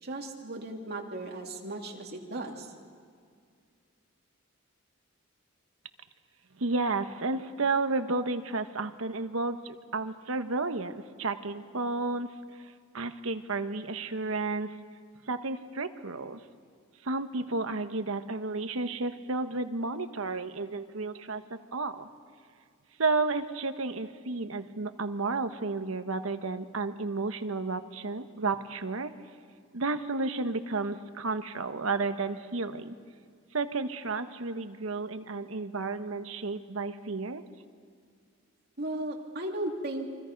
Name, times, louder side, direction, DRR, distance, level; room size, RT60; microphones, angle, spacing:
voice 1, 0.0-2.7 38.8-40.1, right 1 dB, 50° right, 1 dB, 2.7 m, -36 dB
voice 2, 6.6-12.3 12.6-14.7 15.3-16.4 17.0-22.1 23.0-29.1 29.7-33.0 33.5-37.4, right 3 dB, 80° right, 8 dB, 1.2 m, -32 dB
28.5 x 24.0 x 5.3 m, 2.1 s
head